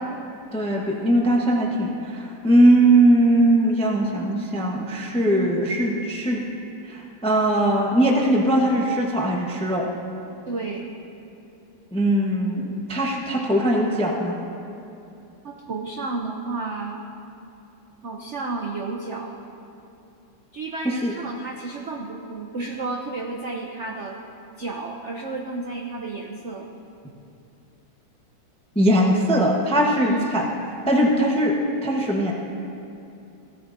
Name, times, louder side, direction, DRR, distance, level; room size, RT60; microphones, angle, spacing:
voice 1, 0.5-6.4 6.8-9.9 11.9-14.4 20.8-21.1 28.7-30.4 30.9-31.6 31.8-32.3, right 1 dB, 10° left, -1 dB, 0.3 m, -20 dB
voice 2, 10.5-10.9 15.4-17.0 18.0-19.3 20.5-24.2 24.6-26.7 30.0-30.3, right 3 dB, 80° right, 1 dB, 0.6 m, -31 dB
16.5 x 13.5 x 2.6 m, 2.8 s
omnidirectional pair, 2.2 m